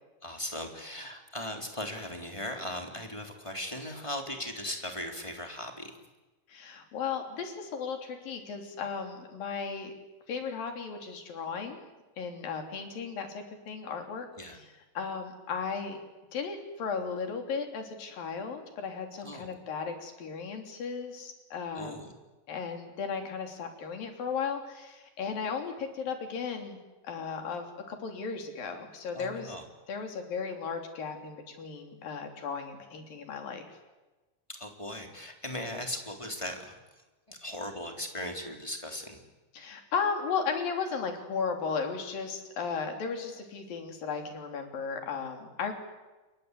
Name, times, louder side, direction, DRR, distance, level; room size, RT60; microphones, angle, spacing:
voice 1, 0.2-5.9 14.4-14.6 19.2-19.5 21.7-22.1 29.1-29.6 34.5-36.8 37.3-39.2, left 1 dB, 10° left, 3 dB, 3.2 m, -38 dB
voice 2, 6.5-9.9 10.3-11.8 12.2-14.7 14.9-16.0 16.3-22.0 22.5-26.8 27.0-29.5 29.9-33.8 39.5-45.7, left 5 dB, 85° left, 5 dB, 5.0 m, -35 dB
28.5 x 23.0 x 8.3 m, 1.2 s
omnidirectional pair, 3.9 m